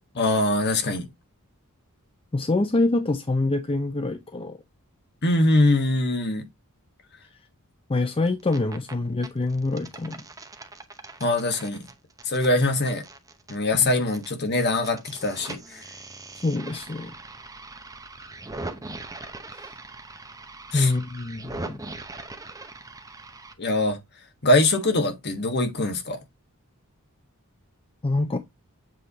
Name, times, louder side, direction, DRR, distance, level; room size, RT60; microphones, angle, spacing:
voice 1, 0.1-1.1 5.2-6.5 11.2-11.9 12.2-13.0 13.5-15.8 20.7-20.9 23.6-24.0 24.4-26.2, left 2 dB, 50° left, 1.3 m, -23 dB
voice 2, 2.3-4.6 7.9-10.3 13.8-13.9 16.4-17.1 20.7-21.8 28.0-28.4, left 2 dB, 25° left, 0.5 m, -25 dB
sound 1, 8.3-8.9 9.2-14.3 14.6-23.5, right 2 dB, 15° right, 0.8 m, -41 dB
7.7 x 3.3 x 4.0 m
head